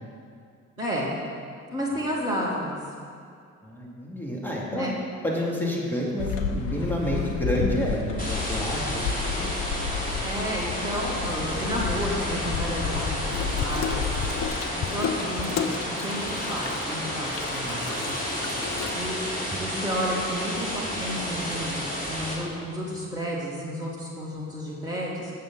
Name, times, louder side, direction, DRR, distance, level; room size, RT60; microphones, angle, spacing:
voice 1, 0.8-1.1 1.7-2.8 4.7-5.0 10.2-14.1 14.7-18.2 18.9-25.3, equal, 85° right, -7 dB, 2.2 m, -31 dB
voice 2, 3.6-4.9 5.2-9.5, equal, 5° left, -4 dB, 3.0 m, -29 dB
sound 1, 6.2-14.5, left 6 dB, 60° left, 0.9 m, -31 dB
sound 2, 8.2-22.3, equal, 20° left, 3.4 m, -31 dB
Water tap faucet / Sink (filling or washing), 13.3-19.4, left 8 dB, 40° left, 0.6 m, -34 dB
16.5 x 7.2 x 4.2 m, 2.3 s
figure-of-eight pair, 40°, 42 cm